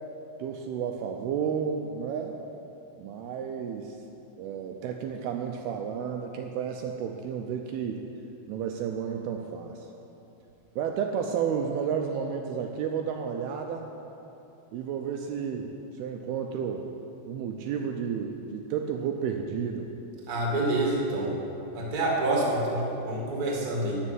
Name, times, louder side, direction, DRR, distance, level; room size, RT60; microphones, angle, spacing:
voice 1, 0.4-2.4 3.0-4.0 4.4-8.0 8.5-9.9 10.8-13.9 14.7-15.7 16.0-16.9 17.2-19.9, right 7 dB, 80° right, 3 dB, 2.5 m, -32 dB
voice 2, 20.3-21.3 21.7-24.0, right 2 dB, 30° right, -3 dB, 1.8 m, -27 dB
12.5 x 5.4 x 8.9 m, 2.8 s
omnidirectional pair, 4.8 m